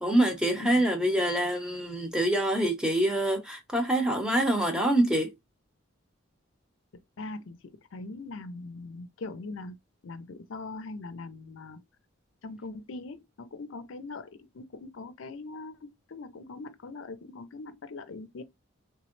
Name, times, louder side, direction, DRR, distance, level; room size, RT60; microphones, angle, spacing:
voice 1, 0.0-5.3, right 1 dB, 5° right, 0.8 m, -25 dB
voice 2, 7.2-9.8 10.0-11.8 12.4-18.4, left 3 dB, 70° left, 0.5 m, -41 dB
3.4 x 3.0 x 3.1 m
head